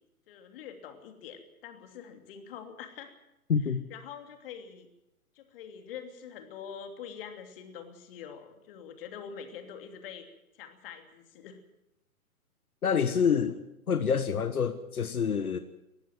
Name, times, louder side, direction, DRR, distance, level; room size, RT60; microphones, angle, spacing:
voice 1, 0.3-3.1 3.7-4.9 5.3-10.3 10.5-11.6 13.5-13.6, left 7 dB, 40° left, 3.0 m, -45 dB
voice 2, 3.5-3.8 12.8-13.6 13.9-15.6, left 6 dB, 80° left, 1.4 m, -27 dB
19.0 x 15.0 x 9.4 m
hypercardioid pair, 135°, 44 cm